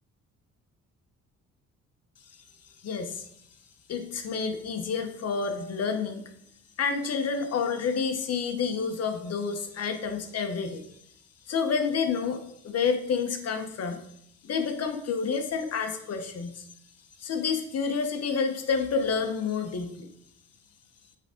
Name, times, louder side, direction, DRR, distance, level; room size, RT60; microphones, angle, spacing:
voice 1, 2.8-3.2 3.9-6.2 6.8-10.8 11.5-14.0 14.4-16.6 17.2-20.1, left 5 dB, 55° left, 7 dB, 1.0 m, -29 dB
8.1 x 3.6 x 5.1 m, 0.72 s
cardioid pair, 90°, 30 cm